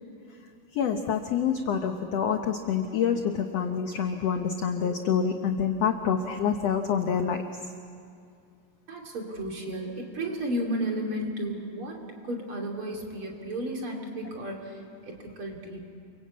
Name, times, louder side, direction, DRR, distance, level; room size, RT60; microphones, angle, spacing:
voice 1, 0.7-7.4, left 7 dB, 70° left, 6 dB, 1.6 m, -27 dB
voice 2, 8.9-15.8, right 1 dB, 40° right, 1 dB, 3.4 m, -33 dB
28.5 x 24.0 x 8.4 m, 2.3 s
omnidirectional pair, 4.1 m